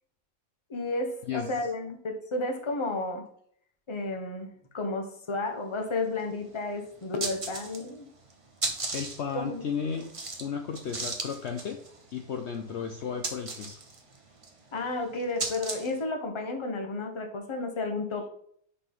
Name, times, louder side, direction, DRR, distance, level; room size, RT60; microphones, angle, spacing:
voice 1, 0.7-3.3 3.9-8.1 9.3-9.6 14.7-18.3, left 2 dB, 25° left, 4 dB, 0.9 m, -32 dB
sound 1, 6.2-6.3 6.6-6.7 7.0-8.0 8.3-16.0, right 3 dB, 25° right, 0.9 m, -36 dB
voice 2, 8.9-10.1 10.4-11.8 12.1-13.8, left 6 dB, 60° left, 4 dB, 0.8 m, -34 dB
5.4 x 4.1 x 5.4 m, 0.65 s
omnidirectional pair, 1.5 m